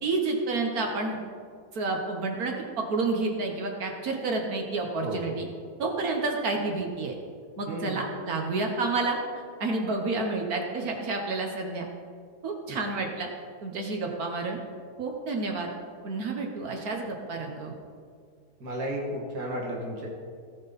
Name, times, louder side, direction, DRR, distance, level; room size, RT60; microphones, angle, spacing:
voice 1, 0.0-1.2 1.7-5.5 5.8-7.2 7.6-9.2 9.6-11.9 12.4-13.3 13.6-14.6 15.0-15.7 16.0-17.8, right 3 dB, 65° right, 2 dB, 1.5 m, -29 dB
voice 2, 7.7-8.0 12.7-12.8 18.6-20.1, right 1 dB, 85° right, -2 dB, 2.6 m, -33 dB
18.0 x 6.1 x 4.1 m, 2.1 s
omnidirectional pair, 1.7 m